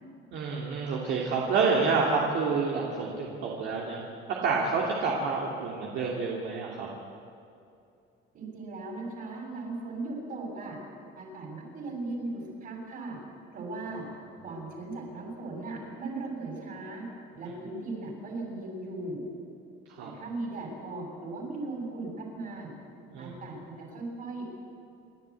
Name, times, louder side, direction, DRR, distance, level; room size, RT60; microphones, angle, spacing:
voice 1, 0.3-4.0 4.4-6.9 20.0-20.1 23.1-23.4, right 4 dB, 60° right, -3 dB, 2.8 m, -28 dB
voice 2, 8.3-10.8 11.1-13.2 13.5-14.0 14.4-17.0 17.4-19.2 20.0-22.7 23.2-24.5, right 2 dB, 45° right, 0 dB, 6.7 m, -38 dB
28.5 x 12.0 x 8.4 m, 2.5 s
cardioid pair, 150°, 21 cm